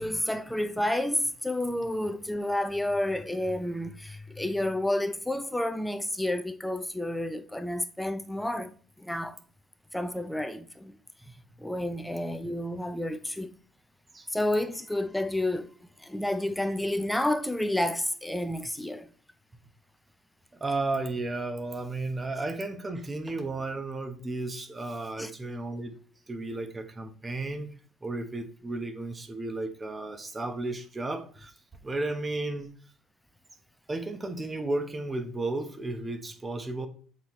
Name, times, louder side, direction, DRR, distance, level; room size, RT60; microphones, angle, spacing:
voice 1, 0.0-9.4 9.9-11.0 11.6-13.5 14.3-15.7 16.0-19.1 25.2-25.3, left 1 dB, 5° left, 0.6 m, -30 dB
voice 2, 20.6-25.9 26.3-27.7 28.0-31.5 31.8-32.7 33.9-36.9, right 2 dB, 20° right, 1.1 m, -33 dB
7.7 x 4.4 x 3.2 m
cardioid pair, 105°, 0 cm